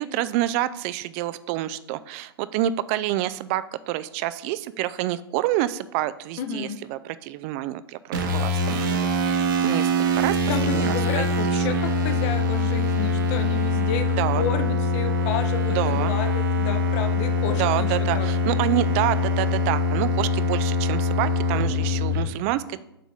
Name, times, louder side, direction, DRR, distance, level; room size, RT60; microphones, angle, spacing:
voice 1, 0.0-10.4 10.7-11.2 11.5-11.7 14.2-14.4 15.7-16.1 17.6-22.8, right 14 dB, 35° right, 15 dB, 0.3 m, -28 dB
voice 2, 6.4-6.8 10.5-18.5, left 7 dB, 35° left, 9 dB, 0.7 m, -31 dB
sound 1, 8.1-22.2, left 2 dB, 55° right, 1.1 m, -23 dB
7.4 x 3.9 x 4.9 m, 0.85 s
figure-of-eight pair, 105°, 13 cm